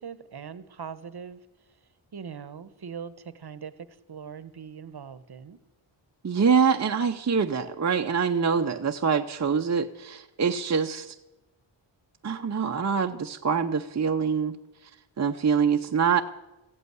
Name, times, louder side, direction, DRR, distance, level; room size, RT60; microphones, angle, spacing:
voice 1, 0.0-1.4 2.1-5.6, right 7 dB, 50° right, 15 dB, 1.1 m, -41 dB
voice 2, 6.2-11.1 12.2-14.6 15.2-16.2, right 6 dB, 35° right, 4 dB, 0.7 m, -25 dB
15.0 x 8.3 x 9.4 m, 1.0 s
cardioid pair, 65°, 49 cm